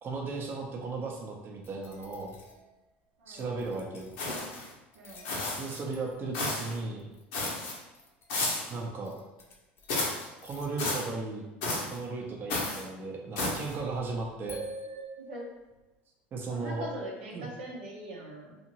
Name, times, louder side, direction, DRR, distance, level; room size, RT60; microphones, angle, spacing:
voice 1, 0.0-2.4 3.3-4.1 5.6-7.0 8.7-9.1 10.4-14.6 16.3-16.9 17.3-17.5, right 3 dB, 35° right, 0 dB, 0.6 m, -36 dB
sound 1, 1.6-2.7 3.3-4.4 4.8-5.7 5.9-8.4 8.8-8.9 9.0-10.0 10.4-10.8 12.0-12.1 12.3-13.3 13.7-15.8, right 1 dB, 45° left, 0.7 m, -48 dB
voice 2, 3.2-3.5 4.9-5.3 15.2-15.4 16.5-18.6, right 1 dB, 85° right, -2 dB, 0.7 m, -41 dB
sound 2, 4.2-4.7 5.2-5.8 6.3-6.8 7.3-7.8 8.3-8.8 9.9-10.3 10.8-11.1 11.6-12.0 12.5-12.8 13.4-13.7, left 2 dB, 75° left, 0.9 m, -32 dB
2.6 x 2.5 x 2.9 m, 1.0 s
hypercardioid pair, 85°, 6 cm